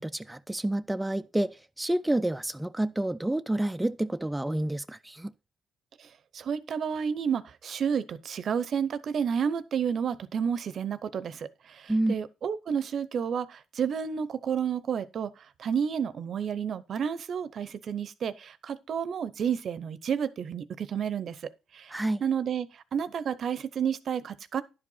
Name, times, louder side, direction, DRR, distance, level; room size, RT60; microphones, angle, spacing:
voice 1, 0.0-5.3 11.9-12.1 21.9-22.2, right 1 dB, 10° right, 0.4 m, -29 dB
voice 2, 6.3-15.3 15.6-21.4 21.7-21.9 22.2-24.6, right 7 dB, 60° right, 0.7 m, -30 dB
11.0 x 4.9 x 5.5 m
cardioid pair, 90°, 0 cm